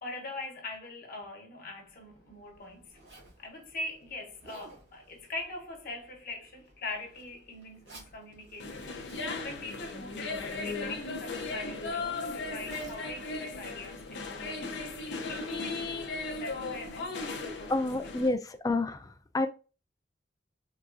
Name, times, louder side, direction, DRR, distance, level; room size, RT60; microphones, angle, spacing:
voice 1, 0.0-3.0 3.4-14.7 15.0-17.9, left 2 dB, 55° left, 1.0 m, -42 dB
Zipper (clothing), 1.7-14.4, right 2 dB, 85° right, 1.9 m, -57 dB
sound 1, 8.6-18.3, left 3 dB, 85° left, 0.6 m, -37 dB
voice 2, 17.7-19.5, left 2 dB, 20° left, 0.3 m, -29 dB
3.8 x 2.3 x 2.5 m
head